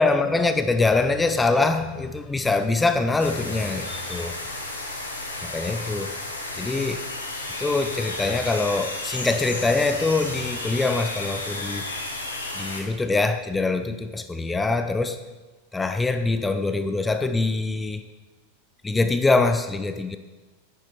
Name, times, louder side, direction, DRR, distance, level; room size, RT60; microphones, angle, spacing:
voice 1, 0.0-4.4 5.4-6.2 6.6-7.0 7.6-11.8 12.6-15.2 15.7-18.0 18.8-20.2, left 3 dB, 10° left, 9 dB, 0.6 m, -24 dB
sound 1, 3.2-12.8, left 2 dB, 80° left, 1.6 m, -33 dB
9.8 x 9.2 x 4.5 m, 1.2 s
figure-of-eight pair, 90°, 0 cm